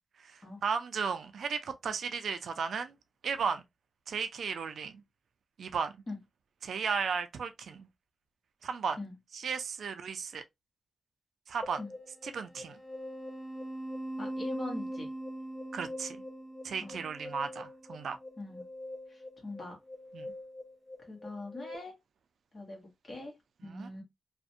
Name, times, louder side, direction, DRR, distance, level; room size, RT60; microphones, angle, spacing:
voice 1, 0.2-2.9 3.2-3.6 4.1-5.0 5.6-6.0 6.6-7.9 8.6-9.0 9.3-10.4 11.5-11.8 12.3-12.8 15.7-16.2 16.6-18.2 20.1-20.3 23.6-23.9, right 6 dB, 80° right, 0.4 m, -35 dB
sound 1, 11.6-21.8, equal, 10° left, 0.5 m, -42 dB
voice 2, 14.2-15.1 16.8-17.0 18.4-18.7 19.1-19.8 21.1-22.0 22.5-23.3 23.6-24.0, left 2 dB, 30° left, 1.0 m, -42 dB
2.4 x 2.1 x 2.6 m
wide cardioid pair, 180°, 0 cm